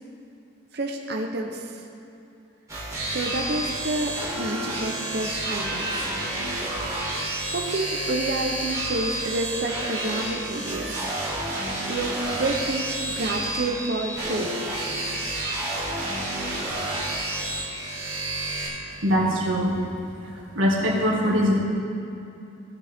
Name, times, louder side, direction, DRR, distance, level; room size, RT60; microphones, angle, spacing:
voice 1, 0.7-1.7 3.1-6.1 7.5-11.0 11.9-14.5, right 2 dB, 55° right, 1 dB, 0.8 m, -29 dB
sound 1, 2.7-18.7, right 1 dB, 15° right, 2.1 m, -30 dB
voice 2, 19.0-19.8 20.6-21.6, equal, 80° right, -3 dB, 1.9 m, -22 dB
16.5 x 6.5 x 3.5 m, 2.8 s
head